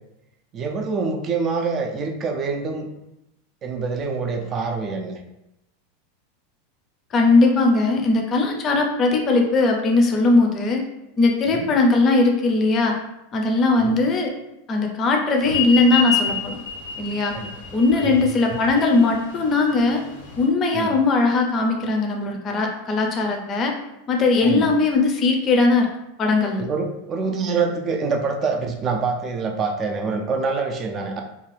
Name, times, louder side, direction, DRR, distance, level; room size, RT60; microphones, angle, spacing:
voice 1, 0.5-2.9 3.6-5.2 11.5-11.7 13.7-14.0 17.3-17.5 17.9-18.2 20.7-20.9 24.4-24.7 26.6-31.2, right 4 dB, 30° right, 3 dB, 0.4 m, -25 dB
voice 2, 7.1-10.8 11.2-12.9 13.3-14.3 14.7-16.5 17.0-17.3 17.7-20.0 20.4-23.7 24.1-25.9 26.2-26.6, left 3 dB, 30° left, 2 dB, 0.5 m, -19 dB
sound 1, 15.5-20.5, left 7 dB, 85° left, 0.6 m, -28 dB
2.5 x 2.3 x 3.2 m, 0.88 s
supercardioid pair, 145°, 0 cm